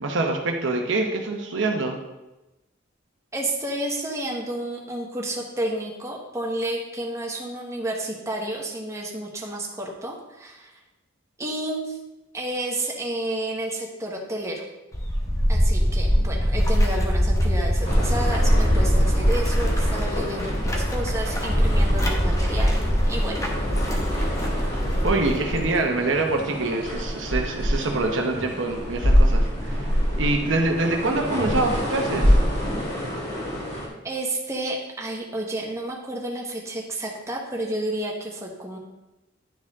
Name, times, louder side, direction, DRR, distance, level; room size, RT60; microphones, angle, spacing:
voice 1, 0.0-2.0 25.0-32.4, right 2 dB, 70° right, 3 dB, 0.9 m, -25 dB
voice 2, 3.3-10.7 11.4-12.0 12.3-14.6 15.5-22.8 23.1-23.4 34.0-38.8, right 1 dB, 15° right, -1 dB, 1.1 m, -31 dB
sound 1, 14.9-25.7, equal, 15° left, 0.9 m, -22 dB
sound 2, 17.8-33.9, equal, 60° left, 2.2 m, -26 dB
10.0 x 4.5 x 3.6 m, 1.0 s
head